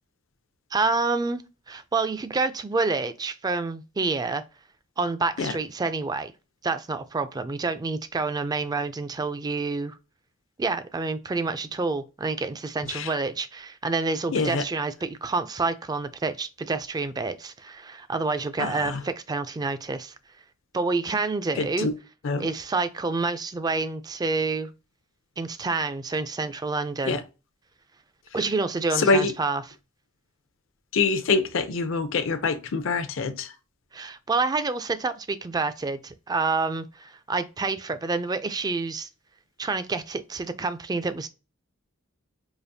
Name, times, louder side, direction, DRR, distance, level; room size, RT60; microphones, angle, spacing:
voice 1, 0.7-4.4 5.0-6.3 6.6-10.0 10.6-20.1 20.7-21.9 22.4-24.7 25.4-27.2 28.3-29.6 33.9-39.1 39.6-41.3, right 3 dB, 20° right, 0.3 m, -28 dB
voice 2, 14.3-14.6 18.6-19.0 21.6-21.9 22.2-22.5 27.1-27.2 29.0-29.3 30.9-33.5, left 4 dB, 70° left, 0.6 m, -25 dB
5.0 x 2.4 x 2.7 m
head